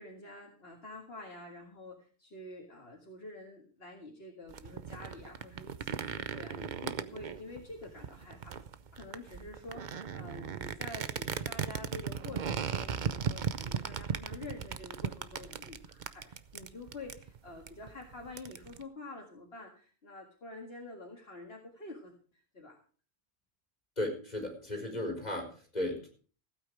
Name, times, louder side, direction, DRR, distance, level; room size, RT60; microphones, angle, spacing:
voice 1, 0.0-8.6 8.9-22.8, left 2 dB, 65° left, 0 dB, 2.2 m, -48 dB
sound 1, 4.5-18.8, right 7 dB, 50° right, 0.8 m, -37 dB
voice 2, 24.0-26.1, left 1 dB, 40° left, 1 dB, 4.8 m, -35 dB
16.0 x 8.9 x 5.0 m, 0.41 s
omnidirectional pair, 1.1 m